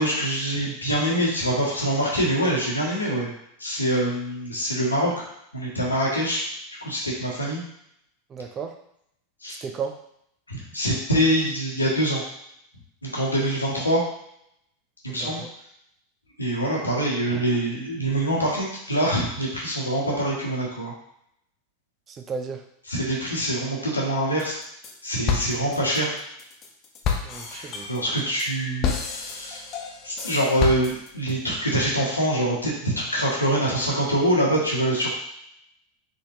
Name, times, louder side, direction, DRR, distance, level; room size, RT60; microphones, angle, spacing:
voice 1, 0.0-3.3 3.6-5.2 5.5-6.4 6.8-7.6 9.4-9.6 10.5-12.2 13.0-14.0 15.0-15.4 16.4-20.9 22.9-24.5 25.0-26.1 27.5-29.6 30.0-35.1, right 1 dB, 90° left, -3 dB, 1.1 m, -24 dB
voice 2, 8.3-8.7 9.6-9.9 13.4-13.5 15.1-15.5 22.1-22.6 27.2-27.9, right 5 dB, 30° right, 5 dB, 0.5 m, -34 dB
sound 1, 24.4-24.9 25.3-31.3, left 7 dB, 40° left, 0.6 m, -30 dB
3.9 x 3.4 x 2.7 m, 0.74 s
figure-of-eight pair, 85°, 0 cm